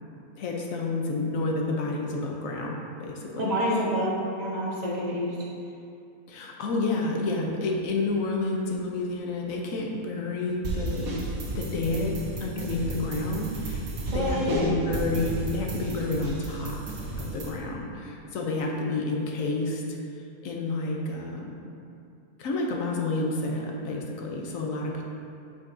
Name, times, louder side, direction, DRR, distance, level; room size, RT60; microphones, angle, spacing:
voice 1, 0.4-3.5 6.3-11.1 11.4-16.8 17.2-20.0 20.4-21.6 22.4-25.0, left 2 dB, 70° left, 0 dB, 1.1 m, -30 dB
voice 2, 3.4-4.1 4.4-5.3 14.1-14.7, equal, 30° right, -6 dB, 1.3 m, -27 dB
sound 1, 10.6-17.5, right 2 dB, 75° right, 1.4 m, -33 dB
8.4 x 5.4 x 2.6 m, 2.5 s
omnidirectional pair, 1.5 m